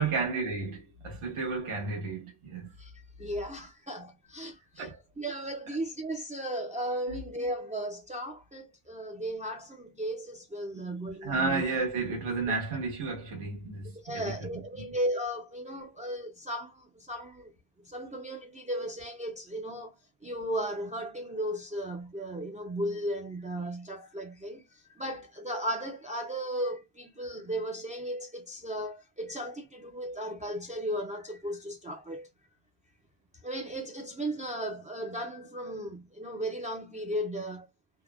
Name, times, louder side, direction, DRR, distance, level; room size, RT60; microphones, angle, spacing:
voice 1, 0.0-2.7 4.8-5.0 7.1-7.2 10.8-14.9, right 4 dB, 80° right, 1.3 m, -32 dB
voice 2, 3.2-4.9 5.2-11.6 14.0-17.5 17.9-19.9 20.2-24.6 25.0-32.3 33.4-37.7, right 1 dB, 15° right, 0.3 m, -35 dB
3.5 x 2.1 x 2.2 m
wide cardioid pair, 145°, 49 cm